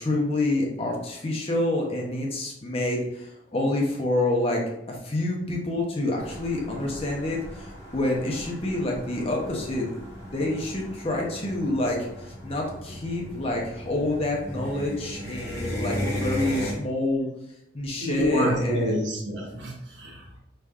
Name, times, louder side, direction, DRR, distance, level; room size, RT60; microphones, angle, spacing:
voice 1, 0.0-4.6 4.9-10.0 10.3-17.3 17.7-18.9, left 2 dB, 30° left, -1 dB, 0.8 m, -27 dB
sound 1, 6.2-16.7, left 1 dB, 15° left, 1.3 m, -36 dB
voice 2, 18.0-20.4, equal, 70° right, -1 dB, 1.0 m, -27 dB
5.0 x 3.3 x 2.4 m, 0.81 s
head